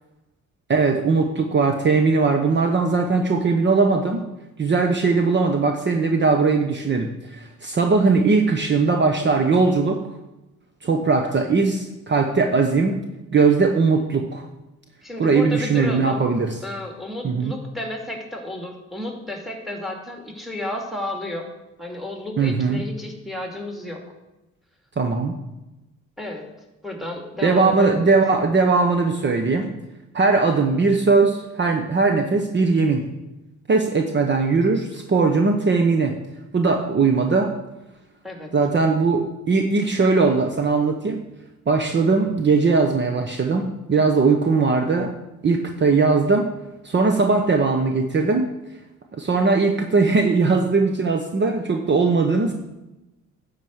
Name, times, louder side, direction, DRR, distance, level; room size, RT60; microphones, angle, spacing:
voice 1, 0.7-4.3 4.6-10.0 10.8-13.0 13.3-14.4 15.2-16.6 17.2-17.5 22.4-22.8 25.0-25.4 27.4-29.7 30.1-33.0 33.7-36.1 36.5-37.5 38.5-41.2 41.7-45.1 45.4-46.5 46.8-48.5 49.1-52.5, right 4 dB, 35° right, 4 dB, 1.0 m, -19 dB
voice 2, 15.0-16.3 16.6-21.5 21.8-24.0 26.2-26.5 26.8-28.1 38.2-38.5, left 1 dB, ahead, 2 dB, 2.3 m, -32 dB
10.5 x 5.0 x 8.0 m, 1.0 s
cardioid pair, 90°, 30 cm